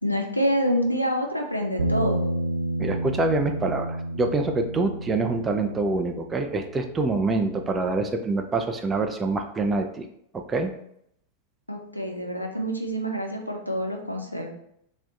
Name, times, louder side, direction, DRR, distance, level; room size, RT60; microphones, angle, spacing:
voice 1, 0.0-2.2 11.7-14.5, equal, 90° left, 2 dB, 0.4 m, -27 dB
Bass guitar, 1.8-8.0, right 1 dB, 75° right, 0.5 m, -31 dB
voice 2, 2.8-10.1 10.3-10.7, right 3 dB, 20° right, 5 dB, 0.3 m, -26 dB
2.5 x 2.1 x 3.6 m, 0.73 s
figure-of-eight pair, 90°, 0 cm